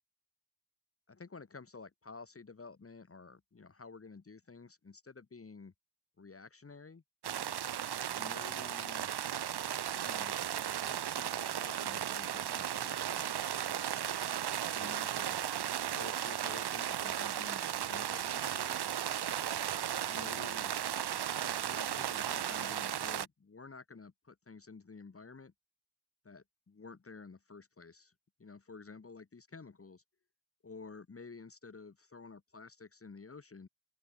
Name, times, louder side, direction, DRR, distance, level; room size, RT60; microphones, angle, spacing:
voice 1, 1.1-5.7 6.2-7.0 8.1-9.1 10.0-10.4 10.8-13.8 14.7-15.4 15.9-18.8 20.1-20.8 21.4-25.5 26.2-28.1 28.4-30.0 30.6-33.7, left 4 dB, 35° left, 1.9 m, -51 dB
sound 1, 7.2-23.3, right 10 dB, 85° right, 0.8 m, -35 dB
open air
wide cardioid pair, 155°, 39 cm